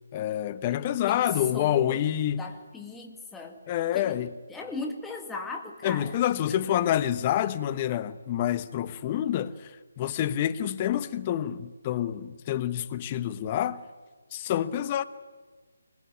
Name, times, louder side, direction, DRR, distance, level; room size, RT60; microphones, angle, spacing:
voice 1, 0.1-2.4 3.7-4.3 5.8-9.7 10.0-13.8 14.3-15.0, left 11 dB, 25° left, 1.0 m, -27 dB
voice 2, 1.1-2.1 2.4-3.6 3.9-4.2 4.5-6.2, left 3 dB, 5° left, 1.9 m, -37 dB
24.0 x 21.0 x 9.7 m
figure-of-eight pair, 155°, 0 cm